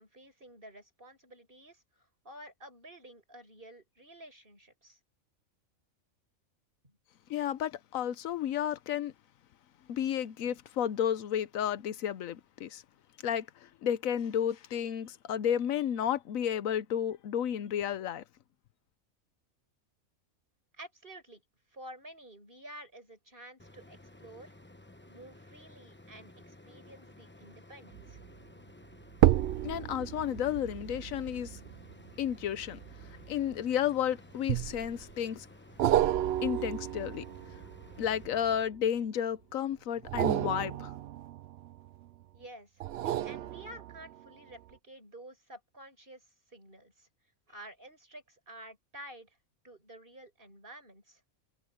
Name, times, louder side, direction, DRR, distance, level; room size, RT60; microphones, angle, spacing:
voice 1, 0.0-5.0 6.8-7.0 20.8-21.4 21.7-24.5 25.1-28.2 42.3-42.7 43.0-46.2 46.5-47.1 47.5-49.4 49.6-51.2, right 1 dB, 40° right, 7.0 m, -51 dB
voice 2, 7.3-9.1 9.9-12.8 13.2-18.2 29.6-31.6 32.2-32.8 33.3-35.5 36.4-37.2 38.0-40.9, left 9 dB, 80° left, 1.1 m, -32 dB
sound 1, 23.6-38.6, left 2 dB, 10° left, 1.0 m, -55 dB
sound 2, 27.9-28.3 29.1-33.8 34.5-35.1 35.8-38.8 40.0-42.1 42.8-44.2 44.7-44.8, right 12 dB, 60° right, 0.7 m, -32 dB
omnidirectional pair, 1.4 m